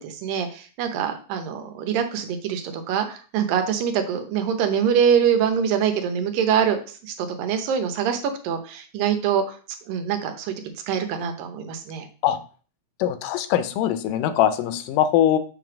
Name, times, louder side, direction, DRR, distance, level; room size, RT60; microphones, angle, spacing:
voice 1, 0.0-9.6 9.9-10.5 10.9-12.1, right 8 dB, 90° right, 6 dB, 2.7 m, -24 dB
voice 2, 13.0-15.4, left 11 dB, 80° left, 11 dB, 2.2 m, -21 dB
7.1 x 3.4 x 5.9 m, 0.39 s
omnidirectional pair, 3.9 m